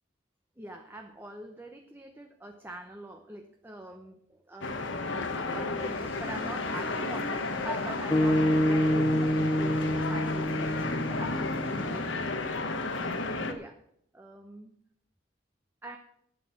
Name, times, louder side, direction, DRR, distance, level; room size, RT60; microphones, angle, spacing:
voice 1, 0.6-4.9 5.3-12.7 13.1-13.8 14.1-14.8 15.8-16.0, right 1 dB, 10° right, 4 dB, 0.9 m, -44 dB
sound 1, 4.6-13.5, left 3 dB, 70° left, 1.3 m, -32 dB
sound 2, 8.1-12.5, equal, 20° left, 0.8 m, -27 dB
11.0 x 8.4 x 7.1 m, 0.72 s
head